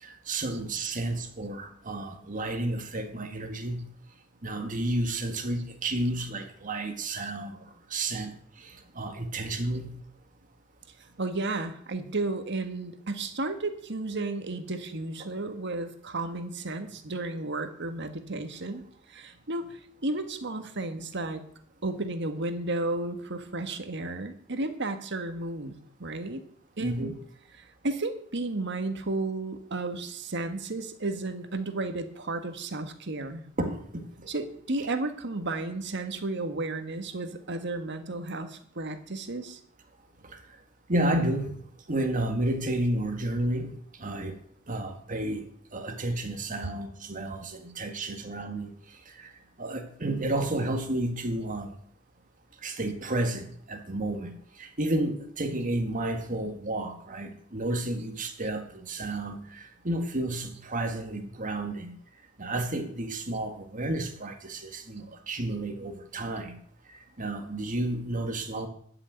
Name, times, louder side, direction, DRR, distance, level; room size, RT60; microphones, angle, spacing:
voice 1, 0.0-3.8 4.4-7.6 7.9-8.3 8.6-9.9 15.2-15.3 26.8-27.1 33.6-34.3 40.2-40.4 40.9-41.5 41.9-44.4 44.7-45.4 45.7-48.7 49.2-49.3 49.6-51.7 52.6-62.0 62.4-66.6 67.2-68.7, right 1 dB, 40° right, 6 dB, 1.8 m, -31 dB
voice 2, 11.2-21.4 21.8-26.4 26.8-27.1 27.8-33.5 34.3-39.6, right 2 dB, 60° right, 8 dB, 1.6 m, -33 dB
13.0 x 6.4 x 9.3 m, 0.63 s
head